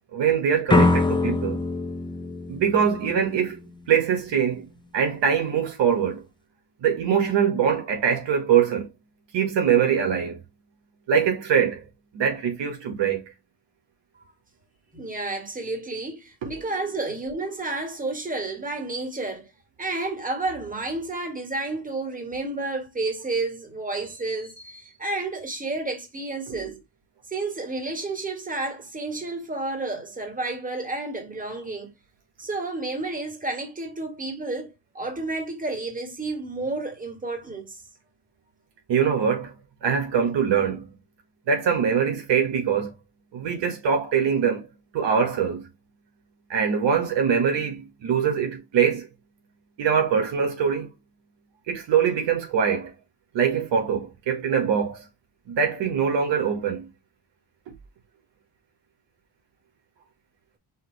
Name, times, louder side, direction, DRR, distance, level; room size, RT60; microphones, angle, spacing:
voice 1, 0.1-1.6 2.5-3.6 3.9-4.6 4.9-6.2 6.8-8.9 9.3-10.4 11.1-11.9 12.1-13.2 16.4-16.5 26.5-26.7 38.9-39.5 39.8-40.9 41.5-42.9 43.3-44.7 44.9-45.6 46.5-49.1 49.8-50.9 51.7-52.9 53.3-55.0 55.5-56.9, right 7 dB, 85° right, 1.7 m, -23 dB
sound 1, 0.7-3.6, left 2 dB, 10° left, 0.6 m, -23 dB
voice 2, 14.9-19.5 19.8-26.8 27.3-31.9 32.4-37.8, right 2 dB, 20° right, 1.8 m, -31 dB
5.5 x 2.8 x 3.2 m
cardioid pair, 110°, 42 cm